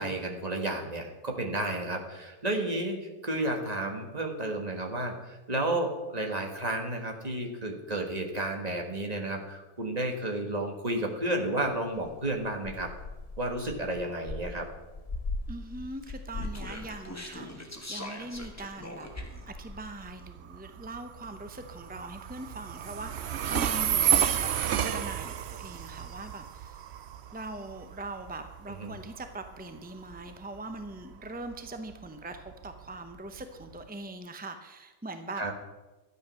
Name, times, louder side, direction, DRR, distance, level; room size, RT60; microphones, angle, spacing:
voice 1, 0.0-12.9 13.4-14.7 28.8-28.9 35.4-35.5, right 1 dB, 25° right, 2 dB, 1.7 m, -32 dB
sound 1, 11.6-17.8 18.1-20.1, left 3 dB, 25° left, 1.1 m, -40 dB
voice 2, 15.5-19.1 19.5-26.8 27.3-35.4, right 2 dB, 10° right, 7 dB, 0.4 m, -41 dB
Speech, 16.0-19.5, left 1 dB, 10° left, 1.4 m, -43 dB
Train, 19.1-33.9, right 9 dB, 60° right, 0.8 m, -32 dB
12.5 x 9.4 x 6.3 m, 1.1 s
omnidirectional pair, 1.5 m